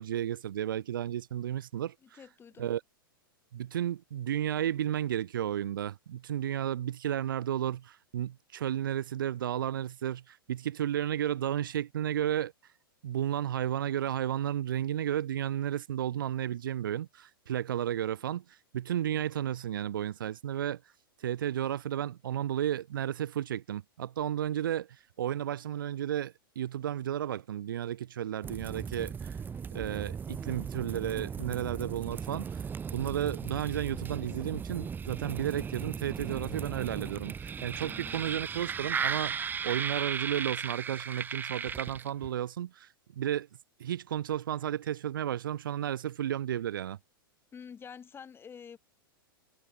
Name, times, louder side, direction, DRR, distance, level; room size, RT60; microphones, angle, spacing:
voice 1, 0.0-2.2 2.6-2.8 3.5-12.5 13.0-20.8 21.2-29.4 29.7-32.6 32.9-39.4 39.6-43.5 43.8-47.0, right 11 dB, 65° right, 1.4 m, -33 dB
voice 2, 2.0-2.7 37.8-38.2 47.5-48.8, left 7 dB, 20° left, 5.6 m, -48 dB
sound 1, 28.4-42.3, right 6 dB, 15° right, 1.0 m, -36 dB
figure-of-eight pair, 100°, 12 cm